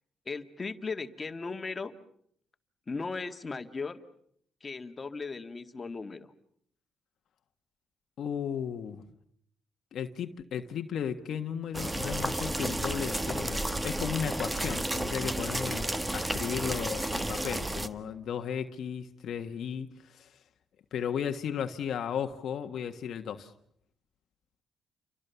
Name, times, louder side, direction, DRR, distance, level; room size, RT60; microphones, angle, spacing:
voice 1, 0.3-1.9 2.9-4.0 4.6-6.3, left 4 dB, 30° left, 7 dB, 1.9 m, -37 dB
voice 2, 8.2-9.0 9.9-20.3 20.9-23.5, left 8 dB, 65° left, 6 dB, 1.5 m, -35 dB
sound 1, 11.7-17.9, right 1 dB, 15° right, 1.5 m, -32 dB
29.5 x 24.5 x 7.0 m, 0.68 s
cardioid pair, 90°, 0 cm